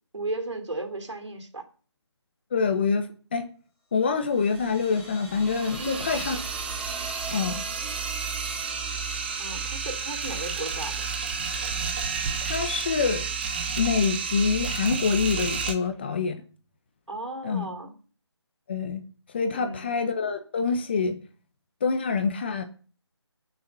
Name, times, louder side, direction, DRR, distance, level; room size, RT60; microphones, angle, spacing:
voice 1, 0.1-1.7 5.8-6.1 9.4-11.1 17.1-18.0 19.5-19.9, right 2 dB, 85° right, 3.6 m, -35 dB
voice 2, 2.5-3.5 3.9-6.4 7.3-7.6 12.4-13.3 13.8-16.4 17.4-17.7 18.7-19.0 19.3-21.2 21.8-22.6, left 5 dB, 20° left, 1.0 m, -26 dB
sound 1, 4.1-14.7, right 1 dB, 5° right, 2.4 m, -44 dB
sound 2, 5.4-15.7, right 5 dB, 20° right, 1.0 m, -31 dB
21.0 x 7.0 x 5.6 m
figure-of-eight pair, 170°, 15 cm